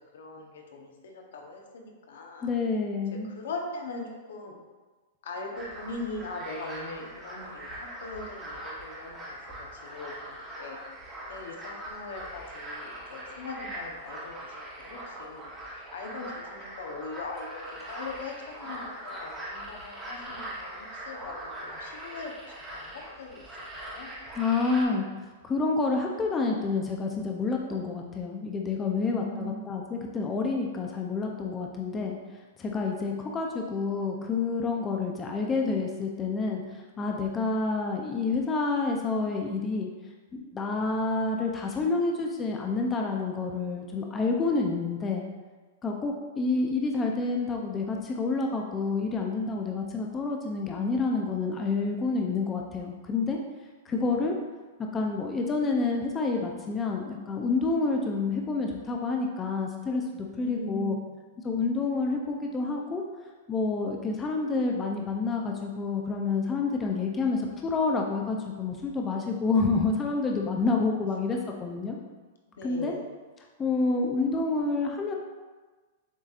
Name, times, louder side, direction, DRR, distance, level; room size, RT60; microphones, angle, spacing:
voice 1, 0.1-2.5 3.2-4.6 5.2-9.4 9.7-10.8 11.3-15.5 15.9-22.3 22.7-23.4 23.8-24.1 28.9-29.7 53.9-54.1 60.4-61.1 71.2-71.3 72.6-73.1, left 2 dB, 75° left, 1 dB, 0.8 m, -40 dB
voice 2, 2.4-3.3 24.4-25.1 25.4-32.2 32.6-39.9 40.3-45.2 45.8-53.4 53.9-54.3 54.9-61.0 61.4-63.0 63.5-72.0 72.6-72.9 73.6-75.1, left 3 dB, 20° left, 1 dB, 0.4 m, -28 dB
sound 1, 5.5-24.8, right 1 dB, 15° right, 1.0 m, -41 dB
7.2 x 2.7 x 2.4 m, 1.3 s
hypercardioid pair, 140°, 0 cm